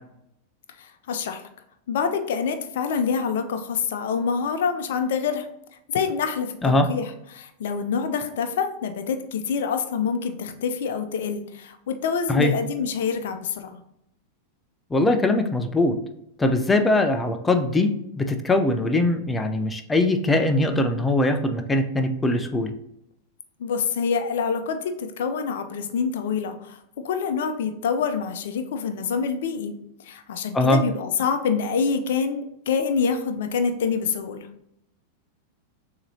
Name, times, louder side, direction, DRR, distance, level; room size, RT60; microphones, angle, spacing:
voice 1, 0.8-1.4 1.9-5.5 5.9-13.8 23.6-26.8 27.0-29.7 30.0-34.5, left 6 dB, 55° left, 7 dB, 0.6 m, -26 dB
voice 2, 14.9-16.0 16.4-17.9 18.2-22.7 30.5-30.8, left 2 dB, 10° left, 7 dB, 0.6 m, -21 dB
6.5 x 2.9 x 2.8 m, 0.79 s
figure-of-eight pair, 90°, 0 cm